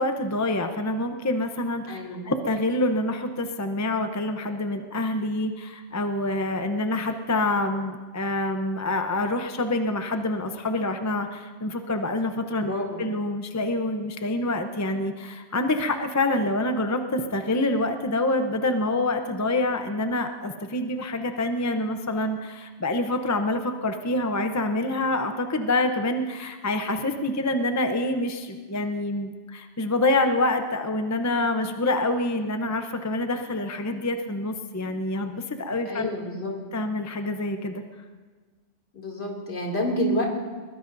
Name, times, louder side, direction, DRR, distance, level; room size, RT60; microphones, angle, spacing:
voice 1, 0.0-12.7 13.0-36.1 36.7-37.8, left 2 dB, 20° left, 6 dB, 0.6 m, -26 dB
voice 2, 1.9-2.3 12.7-13.0 35.9-36.5 38.9-40.2, equal, 65° left, -1 dB, 2.9 m, -28 dB
22.0 x 20.5 x 2.7 m, 1.4 s
omnidirectional pair, 1.2 m